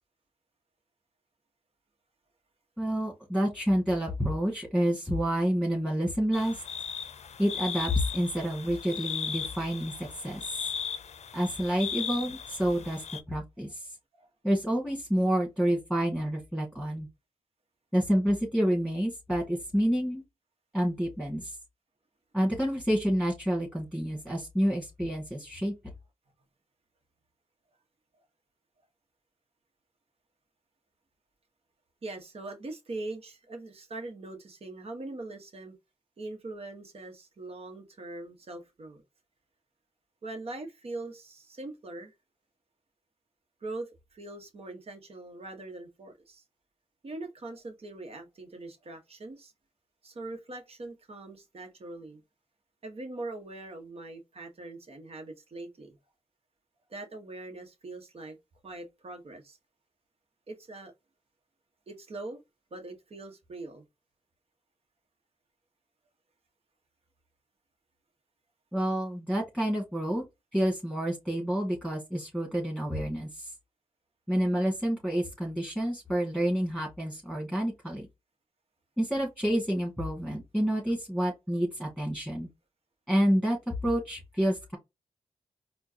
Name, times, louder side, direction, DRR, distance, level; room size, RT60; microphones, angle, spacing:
voice 1, 2.8-6.6 7.4-10.6 11.3-13.8 14.4-17.1 17.9-20.2 20.7-21.6 22.3-25.7 68.7-70.2 70.5-73.5 74.3-78.1 79.0-82.5 83.1-84.8, equal, 5° right, 2.0 m, -28 dB
sound 1, 6.3-13.2, left 7 dB, 70° left, 0.6 m, -37 dB
voice 2, 32.0-35.7 36.2-39.0 40.2-42.1 43.6-46.4 47.0-49.5 50.0-52.2 52.8-56.0 56.9-58.4 58.6-59.6 60.5-60.9 61.9-62.4 62.7-63.8, right 2 dB, 55° right, 1.4 m, -42 dB
4.4 x 2.4 x 2.8 m
cardioid pair, 55°, 12 cm